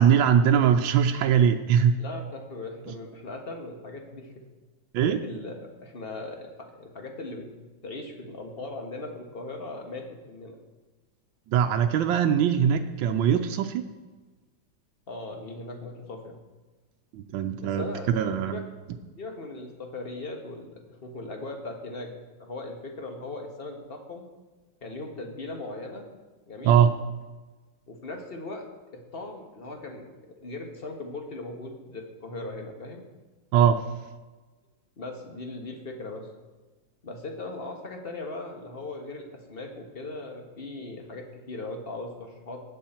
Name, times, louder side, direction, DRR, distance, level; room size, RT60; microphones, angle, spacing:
voice 1, 0.0-2.0 4.9-5.2 11.5-13.8 17.1-18.6 26.6-27.0 33.5-33.8, right 8 dB, 85° right, 6 dB, 1.4 m, -21 dB
voice 2, 2.0-4.4 5.0-7.5 7.8-10.6 15.1-16.4 17.6-18.6 19.1-22.1 22.4-24.3 24.8-26.1 26.5-26.8 27.9-28.7 28.9-33.1 35.0-36.3 37.0-42.6, left 2 dB, 30° left, 2 dB, 1.6 m, -39 dB
18.5 x 6.3 x 4.4 m, 1.3 s
omnidirectional pair, 2.1 m